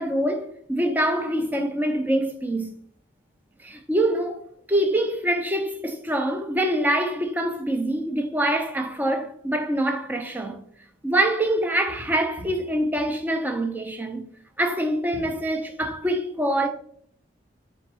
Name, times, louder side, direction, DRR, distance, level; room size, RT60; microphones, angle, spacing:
voice 1, 0.0-2.7 3.6-10.6 11.0-14.3 14.6-16.7, right 1 dB, 10° right, 0.4 m, -25 dB
3.8 x 3.5 x 3.0 m
head